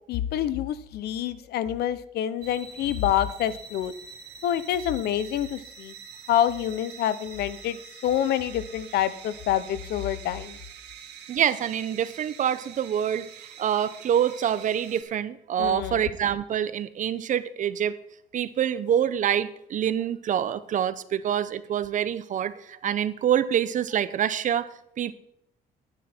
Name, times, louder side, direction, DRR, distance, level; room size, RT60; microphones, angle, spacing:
voice 1, 0.1-3.9 4.4-5.9 6.3-10.6 15.6-16.0, left 11 dB, 70° left, 16 dB, 0.9 m, -27 dB
sound 1, 2.4-15.0, right 7 dB, 80° right, 2.3 m, -45 dB
voice 2, 11.3-13.3 13.6-17.9 18.3-25.1, right 9 dB, 50° right, 14 dB, 0.8 m, -26 dB
11.5 x 9.9 x 4.4 m, 0.76 s
cardioid pair, 110°, 17 cm